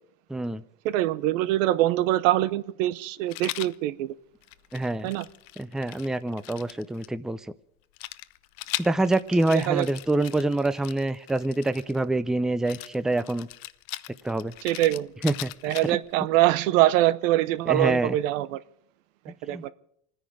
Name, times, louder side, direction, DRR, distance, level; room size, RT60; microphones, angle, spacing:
voice 1, 0.3-0.6 4.7-5.1 5.6-7.5 8.8-13.5 14.2-14.5 15.2-15.5 15.8-16.0 17.7-18.2 19.5-19.7, right 2 dB, ahead, 0.5 m, -26 dB
voice 2, 0.8-4.1 5.0-5.3 9.5-9.9 14.6-15.1 15.6-18.6 19.3-19.7, right 15 dB, 85° right, 0.8 m, -24 dB
Rattle, 3.3-3.8 4.4-7.1 8.0-12.0 12.7-16.1, left 18 dB, 65° left, 0.6 m, -39 dB
26.5 x 10.0 x 4.8 m
supercardioid pair, 105°, 38 cm